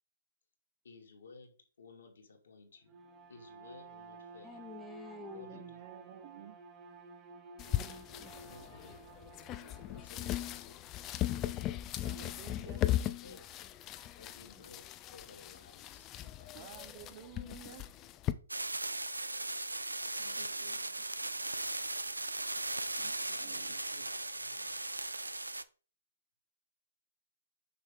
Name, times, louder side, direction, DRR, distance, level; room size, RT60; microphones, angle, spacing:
voice 1, 0.8-3.0 3.3-4.7 5.3-5.8 8.4-9.0 9.8-10.9 12.7-13.4 14.1-16.8 20.2-22.0 23.4-24.8, left 3 dB, 60° left, 1 dB, 2.4 m, -57 dB
Bowed string instrument, 2.8-10.4, right 4 dB, 20° right, 1.2 m, -53 dB
voice 2, 4.4-5.7 7.7-8.9 12.1-12.4 12.7-13.0 13.2-14.0 14.4-14.7, left 3 dB, 5° left, 2 dB, 1.0 m, -52 dB
voice 3, 5.5-6.6 12.0-12.8 16.5-17.8 20.4-20.8 23.0-23.8, right 11 dB, 35° right, 10 dB, 0.7 m, -52 dB
sound 1, 7.6-18.3, left 13 dB, 25° left, 0.5 m, -38 dB
sound 2, 18.5-25.6, right 2 dB, 85° right, 0.5 m, -38 dB
6.6 x 5.9 x 3.7 m, 0.38 s
figure-of-eight pair, 125°, 0 cm